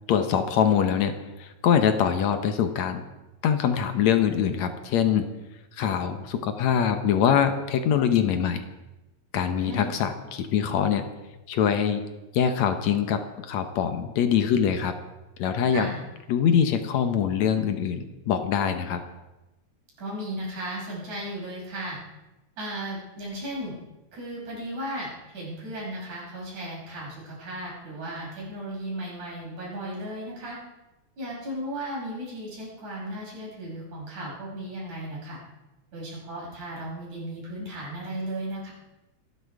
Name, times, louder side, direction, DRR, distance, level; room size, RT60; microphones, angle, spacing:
voice 1, 0.1-3.0 3.4-5.3 5.7-8.6 9.3-11.1 11.5-12.0 12.3-14.9 15.4-15.9 16.3-19.0, left 8 dB, 70° left, 8 dB, 2.2 m, -23 dB
voice 2, 9.6-9.9 15.7-16.0 20.0-22.0 22.6-23.8 24.1-30.6 31.2-35.4 35.9-38.7, right 1 dB, 75° right, -4 dB, 7.3 m, -35 dB
26.5 x 10.5 x 4.8 m, 1.0 s
omnidirectional pair, 3.4 m